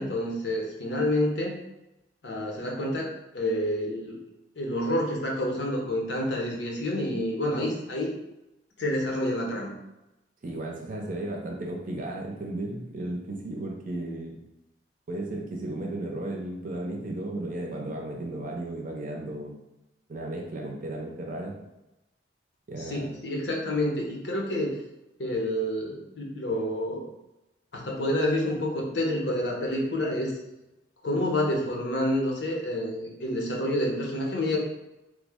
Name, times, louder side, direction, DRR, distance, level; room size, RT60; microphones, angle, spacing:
voice 1, 0.0-1.5 2.2-3.1 3.3-4.2 4.6-8.1 8.8-9.7 22.8-24.7 25.2-27.1 27.7-30.3 31.0-34.6, left 1 dB, 75° left, -1 dB, 0.7 m, -28 dB
voice 2, 10.4-14.4 15.1-19.5 20.1-21.5 22.7-23.2, right 1 dB, 45° right, -1 dB, 0.5 m, -34 dB
3.2 x 2.1 x 3.4 m, 0.96 s
head